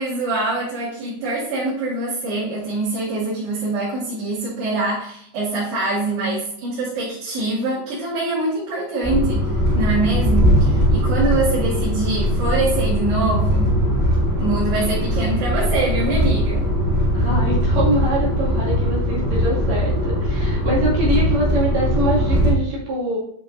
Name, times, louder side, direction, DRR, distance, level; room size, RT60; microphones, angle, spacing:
voice 1, 0.0-13.8 14.4-16.7, right 2 dB, 75° right, -10 dB, 4.4 m, -24 dB
sound 1, 9.0-22.5, equal, 5° left, 2.6 m, -20 dB
voice 2, 17.1-23.2, right 1 dB, 50° right, -5 dB, 3.0 m, -24 dB
10.5 x 5.8 x 2.6 m, 0.68 s
omnidirectional pair, 4.8 m